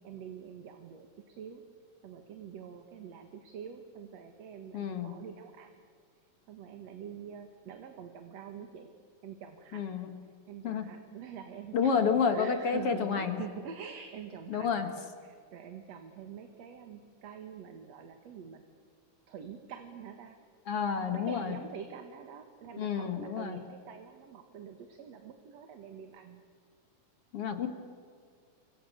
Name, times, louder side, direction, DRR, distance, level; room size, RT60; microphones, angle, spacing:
voice 1, 0.0-1.6 2.0-5.8 6.5-8.9 9.2-10.0 10.5-12.0 12.3-14.9 15.2-18.6 19.3-20.4 21.0-26.4, right 8 dB, 60° right, 6 dB, 2.6 m, -46 dB
voice 2, 4.7-5.2 9.7-10.1 10.6-10.9 11.7-13.4 14.5-14.9 20.7-21.6 22.8-23.6 27.3-27.7, left 6 dB, 50° left, 7 dB, 2.4 m, -30 dB
29.0 x 25.0 x 6.7 m, 2.2 s
omnidirectional pair, 3.5 m